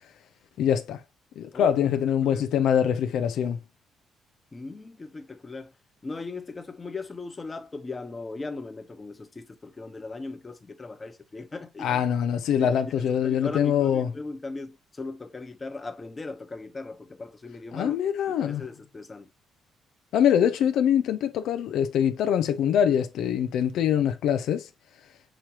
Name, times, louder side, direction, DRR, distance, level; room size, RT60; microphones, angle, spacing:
voice 1, 0.6-1.0 1.4-3.6 11.8-14.1 17.7-18.6 20.1-24.7, left 9 dB, 80° left, 0.4 m, -24 dB
voice 2, 4.5-5.7 6.0-12.0 12.5-18.0 18.3-19.3, left 3 dB, 25° left, 1.0 m, -38 dB
6.2 x 2.9 x 2.8 m
cardioid pair, 90°, 0 cm